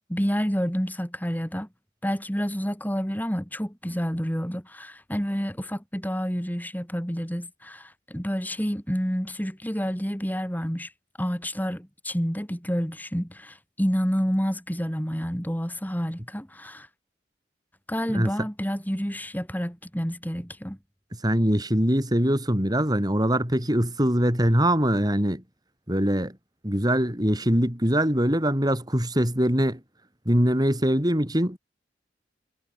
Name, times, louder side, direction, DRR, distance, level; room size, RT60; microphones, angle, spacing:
voice 1, 0.0-1.7 2.0-10.9 11.2-16.9 17.9-20.8, equal, 10° left, 7.5 m, -29 dB
voice 2, 18.1-18.5 21.2-25.4 25.9-26.4 26.6-29.8 30.3-31.6, equal, 20° right, 7.8 m, -23 dB
head